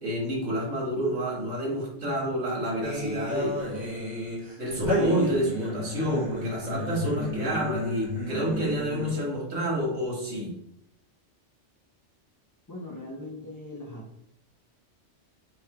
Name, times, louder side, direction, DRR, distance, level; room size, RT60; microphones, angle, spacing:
voice 1, 0.0-3.5 4.6-10.5, equal, 80° right, -2 dB, 1.7 m, -29 dB
sound 1, 2.8-9.3, left 1 dB, 40° right, 1.2 m, -32 dB
voice 2, 12.7-14.3, left 1 dB, 30° left, -4 dB, 0.3 m, -40 dB
3.4 x 3.1 x 4.6 m, 0.77 s
omnidirectional pair, 1.3 m